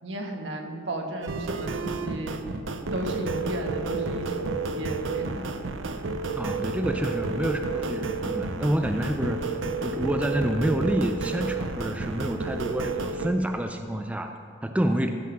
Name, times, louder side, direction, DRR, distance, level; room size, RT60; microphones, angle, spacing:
voice 1, 0.0-2.4 2.9-5.4, right 1 dB, 75° right, 2 dB, 1.4 m, -34 dB
sound 1, 1.2-13.3, right 3 dB, 90° right, 0.7 m, -31 dB
voice 2, 6.4-9.5 9.8-15.1, right 1 dB, 5° right, 5 dB, 0.4 m, -28 dB
15.0 x 6.0 x 6.0 m, 2.4 s
head